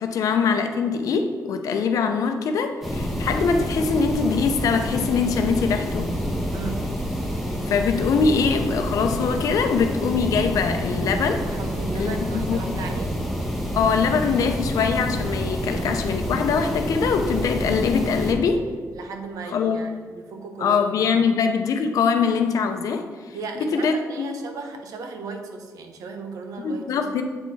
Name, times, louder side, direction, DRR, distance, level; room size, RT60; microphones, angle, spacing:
voice 1, 0.0-6.1 7.7-11.4 12.0-12.2 12.5-12.7 13.7-18.6 19.5-19.8 20.6-23.0 23.6-24.3 26.6-27.2, left 5 dB, 75° left, 6 dB, 0.7 m, -23 dB
sound 1, 2.8-18.3, equal, 5° right, 1.3 m, -28 dB
voice 2, 6.5-6.8 11.5-13.1 18.9-21.2 23.3-27.2, right 4 dB, 80° right, 4 dB, 0.9 m, -36 dB
7.8 x 4.6 x 4.2 m, 1.5 s
cardioid pair, 110°, 6 cm